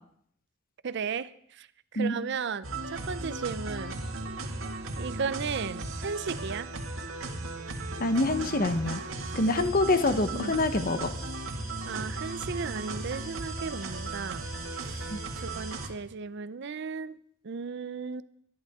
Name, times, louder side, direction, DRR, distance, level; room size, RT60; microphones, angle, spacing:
voice 1, 0.8-1.7 1.9-4.0 5.0-6.7 10.3-10.6 11.9-14.4 14.8-17.2 17.4-18.2, right 5 dB, 60° right, 0.5 m, -35 dB
sound 1, 2.6-15.9, right 2 dB, 75° right, 2.0 m, -36 dB
voice 2, 8.0-9.0 9.3-11.1 15.1-15.2, left 2 dB, 45° left, 1.1 m, -26 dB
24.0 x 11.0 x 3.6 m
head